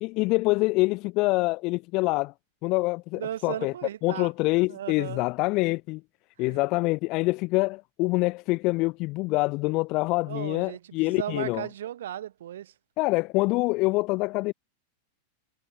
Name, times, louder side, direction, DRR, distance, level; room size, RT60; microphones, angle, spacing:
voice 1, 0.0-2.3 2.6-3.7 4.0-6.0 6.4-11.7 13.0-14.5, left 23 dB, 40° left, 1.1 m, -25 dB
voice 2, 3.1-4.3 4.7-5.2 6.4-6.6 10.3-12.7, right 11 dB, 60° right, 4.0 m, -36 dB
figure-of-eight pair, 90°, 0 cm